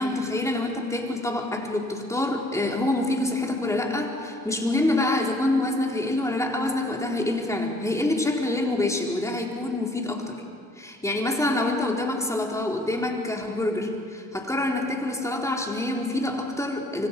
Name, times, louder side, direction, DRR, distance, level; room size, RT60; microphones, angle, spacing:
voice 1, 0.0-10.4 10.8-17.1, left 2 dB, 5° left, 0 dB, 4.0 m, -26 dB
26.5 x 25.0 x 5.5 m, 2.4 s
hypercardioid pair, 85°, 44 cm